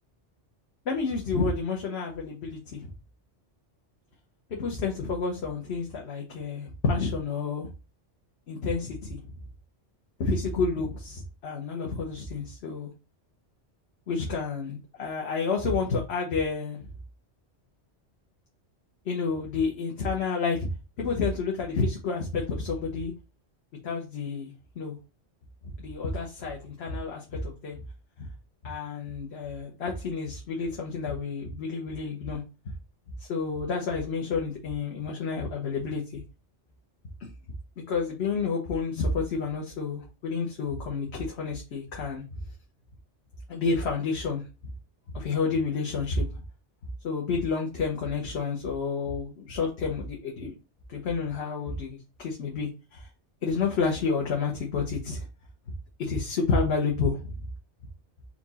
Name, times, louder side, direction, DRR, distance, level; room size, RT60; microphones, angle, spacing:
voice 1, 0.9-2.9 4.6-7.7 8.5-9.2 10.2-12.9 14.1-16.8 19.0-20.7 21.0-23.1 23.8-25.0 25.8-27.8 28.2-28.3 28.6-32.4 33.2-36.2 37.2-37.3 37.9-42.2 43.5-44.5 45.1-46.3 47.0-50.5 50.9-53.1 53.4-55.3 56.0-57.3, left 4 dB, 65° left, -1 dB, 1.1 m, -30 dB
4.5 x 2.4 x 4.0 m, 0.31 s
omnidirectional pair, 1.2 m